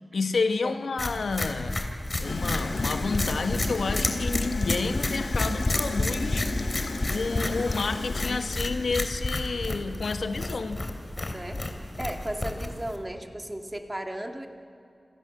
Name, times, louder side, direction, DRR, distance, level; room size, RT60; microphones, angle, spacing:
voice 1, 0.1-6.5 7.1-10.8, left 4 dB, 90° left, 8 dB, 1.4 m, -30 dB
sound 1, 1.0-13.0, left 2 dB, 35° left, 3.1 m, -30 dB
Gurgling / Toilet flush, 2.2-9.3, left 3 dB, 65° left, 0.9 m, -35 dB
voice 2, 11.0-14.5, right 1 dB, 15° right, 4 dB, 2.2 m, -36 dB
28.5 x 27.5 x 7.2 m, 2.5 s
wide cardioid pair, 95°, 0 cm